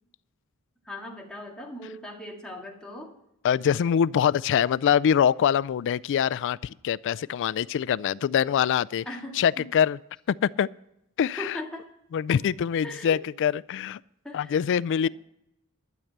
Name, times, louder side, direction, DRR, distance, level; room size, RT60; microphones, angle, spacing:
voice 1, 0.9-3.1 9.1-9.7 11.4-11.9 12.8-13.2 14.2-14.6, left 1 dB, 5° left, 2.0 m, -39 dB
voice 2, 3.4-9.0 9.4-10.0 10.4-10.7 11.2-11.5 12.1-14.0 14.3-15.1, left 8 dB, 55° left, 0.3 m, -24 dB
12.5 x 7.2 x 6.6 m
head